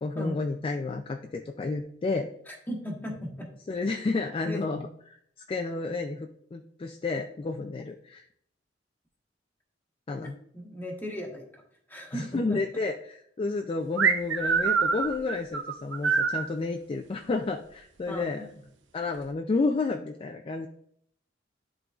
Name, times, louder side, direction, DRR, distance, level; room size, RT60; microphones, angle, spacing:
voice 1, 0.0-2.3 3.7-5.2 5.5-8.2 10.1-10.3 12.1-18.5 18.9-20.7, left 3 dB, 30° left, 5 dB, 0.3 m, -31 dB
voice 2, 2.5-3.5 4.4-4.6 10.5-11.6 11.9-12.6 18.1-18.5, equal, 10° left, 0 dB, 1.3 m, -37 dB
sound 1, 14.0-16.5, right 5 dB, 80° right, 0.7 m, -25 dB
11.0 x 3.9 x 2.4 m, 0.69 s
head